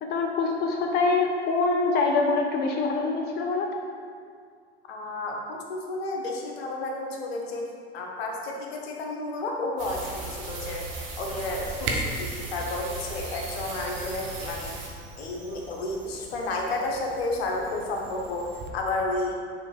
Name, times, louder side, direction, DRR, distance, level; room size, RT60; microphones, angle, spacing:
voice 1, 0.0-3.8, left 3 dB, 30° left, 1 dB, 0.6 m, -25 dB
voice 2, 4.9-7.6 7.9-10.8 11.2-14.8 15.2-19.4, left 2 dB, 65° left, 0 dB, 1.1 m, -31 dB
sound 1, 9.8-14.9, right 3 dB, 55° right, 1.6 m, -37 dB
Camera, 11.3-18.7, right 2 dB, 35° right, 1.0 m, -39 dB
6.8 x 3.5 x 4.9 m, 2.1 s
figure-of-eight pair, 75°, 33 cm